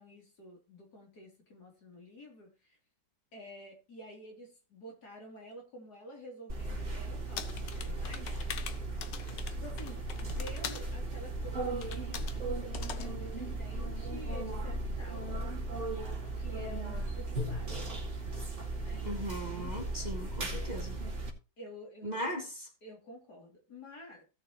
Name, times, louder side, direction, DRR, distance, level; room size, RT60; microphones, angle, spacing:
voice 1, 0.0-2.8 3.3-8.7 9.5-15.3 16.2-18.0 18.8-19.1 21.6-22.5 22.8-24.2, equal, 65° left, 0 dB, 3.9 m, -50 dB
sound 1, 6.5-21.3, right 2 dB, 40° right, 2.6 m, -37 dB
sound 2, 7.4-10.9 11.8-12.4 12.7-13.1, left 8 dB, 85° left, 1.6 m, -42 dB
voice 2, 19.0-20.9 22.0-22.7, equal, 25° right, 2 dB, 2.1 m, -38 dB
17.5 x 6.7 x 3.1 m, 0.31 s
omnidirectional pair, 1.9 m